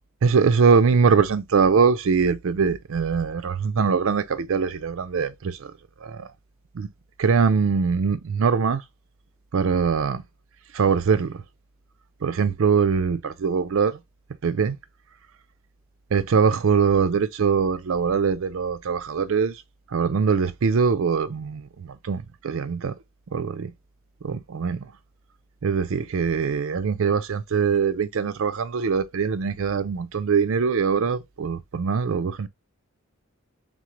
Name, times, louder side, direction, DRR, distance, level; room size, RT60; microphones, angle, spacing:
voice 1, 0.2-5.7 6.0-6.3 6.7-6.9 7.2-8.8 9.5-10.2 10.7-11.4 12.2-14.0 14.4-14.8 16.1-19.6 19.9-23.0 23.3-23.7 24.2-24.9 25.6-32.5, right 5 dB, 60° right, 0.4 m, -22 dB
3.8 x 3.7 x 3.0 m
head